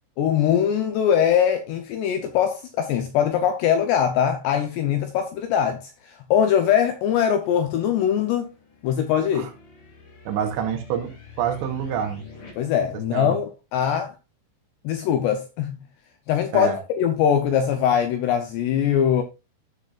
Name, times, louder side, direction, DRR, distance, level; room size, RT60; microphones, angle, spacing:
voice 1, 0.2-8.5 8.8-9.5 12.6-14.1 14.8-15.8 16.3-19.2, left 9 dB, 80° left, 2.5 m, -22 dB
sound 1, 7.6-12.5, left 6 dB, 45° left, 3.6 m, -46 dB
voice 2, 10.3-11.1 11.4-12.2 13.1-13.4 16.5-16.8, right 8 dB, 75° right, 3.2 m, -27 dB
13.5 x 6.7 x 2.4 m
omnidirectional pair, 5.7 m